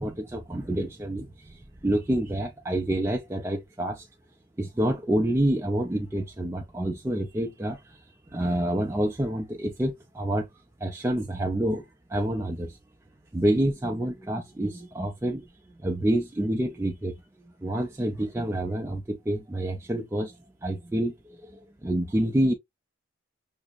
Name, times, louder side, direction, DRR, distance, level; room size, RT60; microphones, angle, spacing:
voice 1, 0.0-4.1 4.6-8.0 8.3-10.5 10.8-11.8 12.1-12.8 13.3-15.5 15.8-17.2 17.6-20.4 20.6-22.5, right 1 dB, 15° right, 0.4 m, -28 dB
5.9 x 2.0 x 2.3 m
head